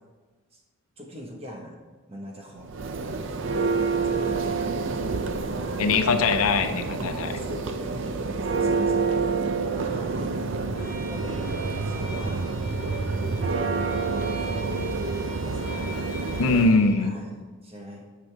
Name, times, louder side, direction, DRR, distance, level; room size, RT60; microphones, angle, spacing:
voice 1, 1.0-1.8 2.1-2.7 3.5-5.8 6.9-10.3 10.8-12.6 14.0-15.1 15.4-16.1 17.0-18.1, equal, 25° right, 0 dB, 1.3 m, -42 dB
Church bell, 2.6-16.8, right 4 dB, 55° right, 0.5 m, -28 dB
voice 2, 5.8-7.3 16.4-17.2, left 3 dB, 80° left, 8 dB, 0.6 m, -22 dB
Bowed string instrument, 10.7-17.0, right 1 dB, 15° left, 2.0 m, -43 dB
9.7 x 6.7 x 3.5 m, 1.3 s
head